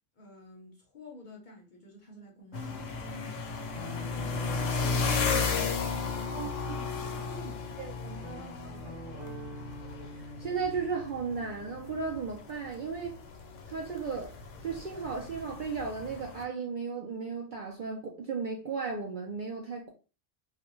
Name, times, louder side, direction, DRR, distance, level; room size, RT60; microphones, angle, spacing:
voice 1, 0.2-4.9 5.2-7.8, left 1 dB, 50° left, 0.6 m, -50 dB
sound 1, 2.5-16.4, left 5 dB, 85° left, 0.9 m, -34 dB
sound 2, 2.5-6.3, left 1 dB, 5° right, 0.7 m, -55 dB
Guitar, 3.7-7.5 8.2-12.9, right 1 dB, 75° right, 1.1 m, -45 dB
voice 2, 7.8-8.3 8.6-9.0 10.4-13.1 13.7-14.4 14.6-19.9, right 5 dB, 60° right, 0.5 m, -35 dB
2.4 x 2.1 x 3.0 m
omnidirectional pair, 1.2 m